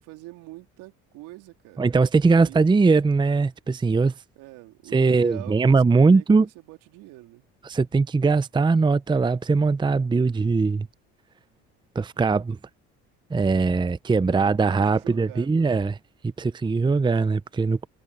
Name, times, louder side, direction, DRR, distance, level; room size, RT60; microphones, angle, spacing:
voice 1, 0.0-1.9 2.3-2.6 4.4-7.5 14.3-15.9, right 20 dB, 75° right, 3.6 m, -44 dB
voice 2, 1.8-4.1 4.9-6.5 7.6-10.9 11.9-12.6 13.3-16.0 16.2-17.9, right 4 dB, 15° right, 0.6 m, -21 dB
supercardioid pair, 70°, 32 cm